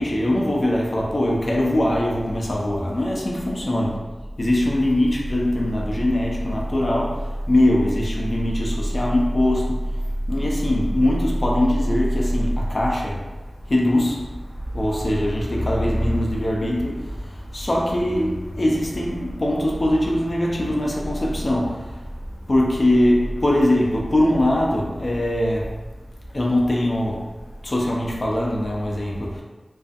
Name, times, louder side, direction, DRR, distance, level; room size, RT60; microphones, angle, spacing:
voice 1, 0.0-4.0 4.4-13.3 13.6-25.8 26.3-29.4, left 1 dB, 45° left, -2 dB, 0.4 m, -22 dB
2.4 x 2.3 x 2.5 m, 1.2 s
wide cardioid pair, 85°, 0 cm